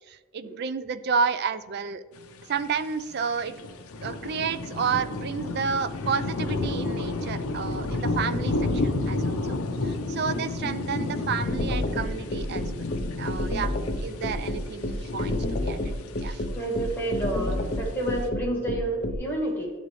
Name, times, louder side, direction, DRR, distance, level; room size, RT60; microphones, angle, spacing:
voice 1, 0.1-2.0 2.5-3.6 4.0-8.6 8.8-12.9 13.2-15.9 16.2-16.4, right 6 dB, 50° right, 13 dB, 0.3 m, -31 dB
sound 1, 2.2-2.8 3.1-3.2 3.4-18.2, left 2 dB, 85° left, 0.6 m, -31 dB
sound 2, 11.5-19.2, left 1 dB, 40° left, 0.6 m, -29 dB
voice 2, 16.5-19.7, right 1 dB, 10° left, -3 dB, 1.5 m, -29 dB
11.5 x 4.0 x 3.2 m, 1.2 s
head